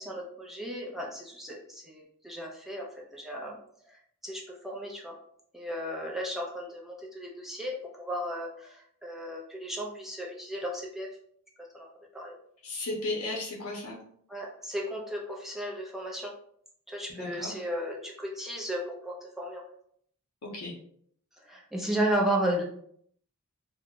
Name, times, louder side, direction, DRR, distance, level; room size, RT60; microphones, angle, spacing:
voice 1, 0.0-2.8 3.1-3.6 4.2-5.1 5.5-11.1 11.7-11.9 12.1-12.3 14.3-16.3 16.9-19.6 21.5-22.6, right 1 dB, ahead, -2 dB, 0.4 m, -34 dB
voice 2, 12.6-14.0 17.1-17.6 20.4-20.7, left 2 dB, 75° left, -2 dB, 0.7 m, -35 dB
2.3 x 2.0 x 3.5 m, 0.65 s
head